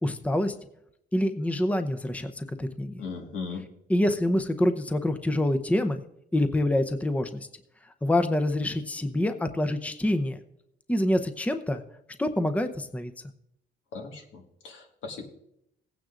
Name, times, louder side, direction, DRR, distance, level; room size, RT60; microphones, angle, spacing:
voice 1, 0.0-0.5 1.1-3.0 3.9-6.0 6.3-7.5 8.0-10.4 10.9-11.8 12.2-13.1, left 1 dB, 5° left, 9 dB, 0.7 m, -26 dB
voice 2, 3.0-3.6 13.9-15.2, left 5 dB, 75° left, 2 dB, 1.8 m, -38 dB
17.0 x 9.3 x 2.5 m, 0.77 s
cardioid pair, 90°, 20 cm